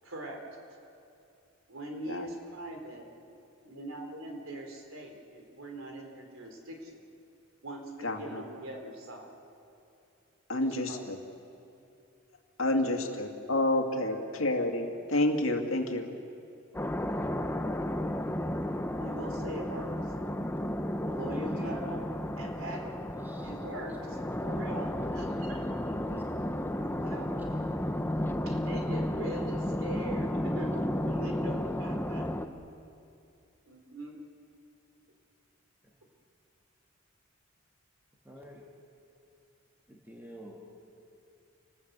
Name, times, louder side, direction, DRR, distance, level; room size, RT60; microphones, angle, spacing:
voice 1, 0.0-0.4 1.7-3.1 3.6-7.0 7.6-9.3 10.5-11.0 14.1-14.2 19.0-19.9 21.1-22.0 22.4-22.9 23.4-24.0 24.4-26.2 27.0-27.3 28.5-32.3 33.7-34.1, right 1 dB, 75° right, 2 dB, 3.9 m, -42 dB
voice 2, 8.0-8.4 10.5-11.2 12.6-16.1, left 1 dB, 75° left, 4 dB, 2.3 m, -29 dB
sound 1, 16.7-32.5, left 1 dB, 10° left, 0.9 m, -33 dB
voice 3, 21.3-21.8 23.1-23.5 23.9-24.0 24.5-24.6 26.8-26.9 35.8-35.9 38.2-38.6 39.9-40.6, equal, 10° right, -2 dB, 2.1 m, -47 dB
28.5 x 20.0 x 8.2 m, 2.6 s
head